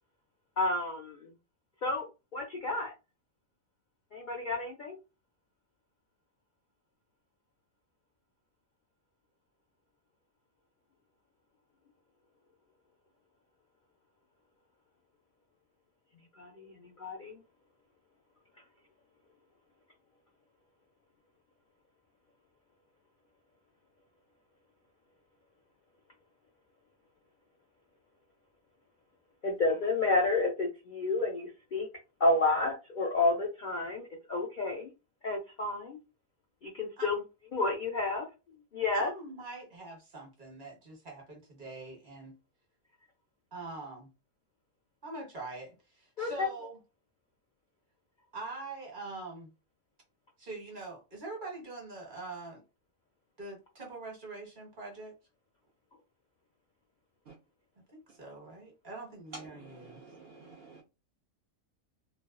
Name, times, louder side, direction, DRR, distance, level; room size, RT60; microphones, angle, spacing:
voice 1, 0.6-1.3 1.8-2.1 2.3-2.9 4.1-5.0 16.4-17.3 29.4-31.9 32.2-34.9 35.2-36.0 36.6-37.2 37.5-38.3 38.7-39.1 46.2-46.5, left 2 dB, 60° left, 0.5 m, -30 dB
voice 2, 38.9-42.4 43.5-44.1 45.0-46.8 48.3-49.5 50.4-52.6 53.4-55.2 57.9-60.0, right 2 dB, 40° right, 1.0 m, -44 dB
voice 3, 59.3-60.8, right 3 dB, 65° right, 0.6 m, -49 dB
2.4 x 2.2 x 2.4 m
omnidirectional pair, 1.4 m